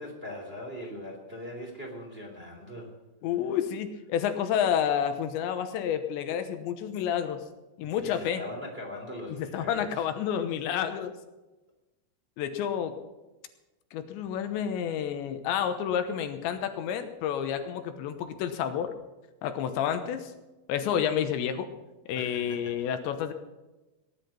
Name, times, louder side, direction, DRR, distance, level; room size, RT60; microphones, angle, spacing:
voice 1, 0.0-2.9 8.0-10.0 22.1-22.9, left 1 dB, 15° right, 0 dB, 2.4 m, -41 dB
voice 2, 3.2-7.4 7.8-8.4 9.4-11.1 12.4-13.0 13.9-18.9 19.4-20.3 20.7-21.7 22.1-23.3, left 9 dB, 75° left, 8 dB, 3.2 m, -29 dB
19.0 x 11.0 x 5.8 m, 1.1 s
omnidirectional pair, 5.4 m